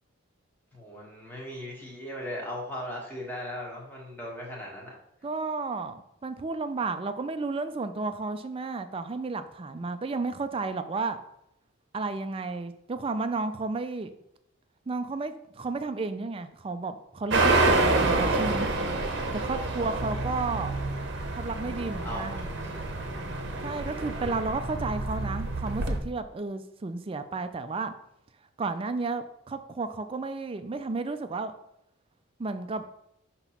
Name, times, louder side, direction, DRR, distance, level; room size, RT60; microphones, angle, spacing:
voice 1, 0.7-4.9 19.5-20.1 22.0-23.1, left 1 dB, 10° left, -4 dB, 1.5 m, -39 dB
voice 2, 5.2-11.2 11.9-14.1 14.9-18.7 19.3-20.7 21.3-22.5 23.6-27.9 28.6-31.5 32.4-32.8, right 3 dB, 25° right, 10 dB, 0.4 m, -32 dB
sound 1, 17.3-26.0, right 2 dB, 55° right, 0.8 m, -28 dB
5.9 x 3.0 x 5.7 m, 0.79 s
head